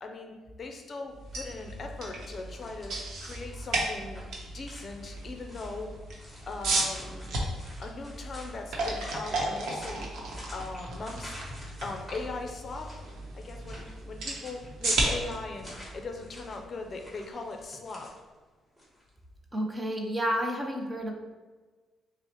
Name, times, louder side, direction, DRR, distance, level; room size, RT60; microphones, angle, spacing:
voice 1, 0.0-2.9 3.2-4.2 4.5-5.9 6.4-7.2 7.8-10.1 10.5-13.0 13.3-18.1, left 3 dB, 45° left, 3 dB, 0.5 m, -39 dB
sound 1, 1.1-17.1, right 2 dB, 75° right, 0.8 m, -35 dB
sound 2, 1.5-19.1, equal, ahead, 1.2 m, -51 dB
voice 2, 19.5-21.1, equal, 20° right, 2 dB, 0.6 m, -30 dB
5.8 x 2.1 x 2.9 m, 1.3 s
cardioid pair, 90°, 0 cm